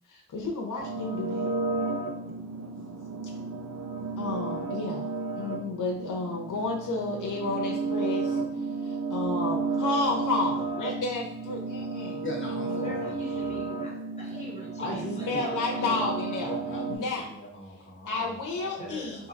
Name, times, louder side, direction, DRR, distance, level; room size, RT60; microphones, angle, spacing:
voice 1, 0.1-1.6 4.2-8.4 8.8-12.8 15.2-16.5 16.9-17.3 18.1-19.2, left 3 dB, 85° left, -1 dB, 0.8 m, -32 dB
sound 1, 0.8-16.9, right 4 dB, 85° right, 0.8 m, -32 dB
voice 2, 12.2-13.5 14.8-15.5 15.8-16.1 16.4-19.3, left 1 dB, 40° left, -2 dB, 1.3 m, -39 dB
voice 3, 12.8-16.3 18.8-19.3, left 1 dB, 20° left, -3 dB, 1.5 m, -43 dB
3.8 x 2.9 x 4.0 m, 0.70 s
wide cardioid pair, 95°, 30 cm